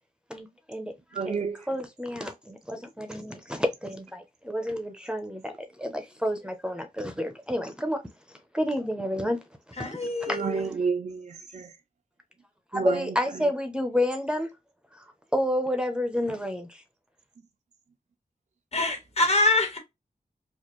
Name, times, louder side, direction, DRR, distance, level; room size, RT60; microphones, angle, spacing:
voice 1, 0.3-0.9 1.3-8.0 8.5-9.4 9.8-10.0 10.3-10.6 12.7-14.5 15.0-15.1 15.3-16.8, left 1 dB, 5° right, 0.6 m, -30 dB
voice 2, 1.1-1.6 10.3-11.7 12.7-13.1, right 5 dB, 50° right, 0.4 m, -30 dB
voice 3, 9.8-10.7 18.7-19.8, left 2 dB, 40° left, 1.2 m, -25 dB
4.1 x 2.4 x 3.0 m
wide cardioid pair, 75°, 16 cm